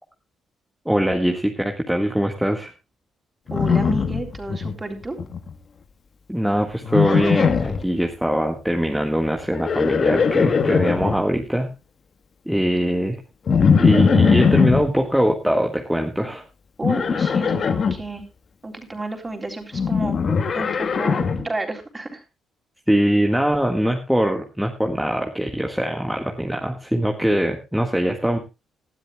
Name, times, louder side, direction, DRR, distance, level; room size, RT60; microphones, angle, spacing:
voice 1, 0.8-2.7 6.3-11.7 12.4-13.2 13.8-16.4 22.9-28.4, equal, 5° right, 2 dB, 1.7 m, -22 dB
Livestock farm animals working animals, 3.5-4.7 5.0-5.5 6.8-7.8 9.4-11.2 13.5-14.9 16.8-18.0 19.7-21.5, left 6 dB, 50° left, 1.4 m, -20 dB
voice 2, 3.5-5.2 16.8-18.2 18.6-22.2, right 2 dB, 20° right, 4 dB, 3.7 m, -31 dB
19.0 x 12.5 x 2.3 m, 0.27 s
cardioid pair, 90°, 0 cm